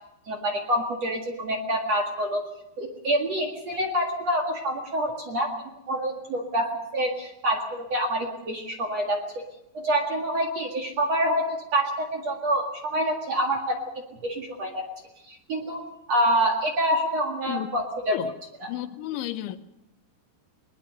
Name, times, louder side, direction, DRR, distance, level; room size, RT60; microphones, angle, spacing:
voice 1, 0.3-2.5 2.8-5.5 5.9-9.2 9.7-13.8 14.2-14.8 15.3-18.2 18.6-18.7, right 1 dB, 50° right, 1 dB, 2.2 m, -27 dB
voice 2, 18.7-19.6, left 14 dB, 80° left, 11 dB, 3.2 m, -32 dB
21.5 x 21.0 x 6.6 m, 0.87 s
omnidirectional pair, 5.5 m